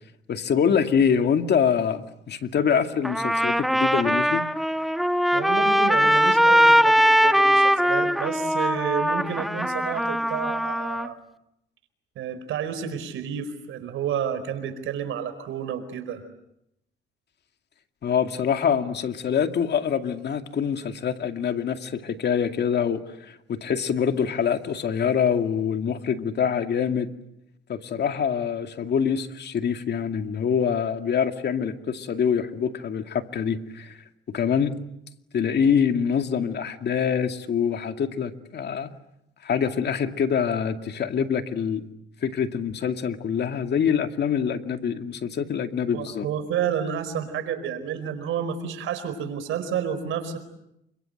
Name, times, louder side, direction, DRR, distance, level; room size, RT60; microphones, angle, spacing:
voice 1, 0.3-4.4 18.0-27.1 27.7-34.0 34.3-34.7 35.3-38.9 39.4-41.8 42.2-46.3, left 7 dB, 60° left, 7 dB, 2.3 m, -25 dB
Trumpet, 3.0-11.1, equal, ahead, 1.3 m, -21 dB
voice 2, 5.3-11.2 12.1-16.2 45.9-50.4, right 8 dB, 85° right, 10 dB, 4.7 m, -30 dB
28.5 x 25.5 x 7.9 m, 0.80 s
cardioid pair, 90°, 20 cm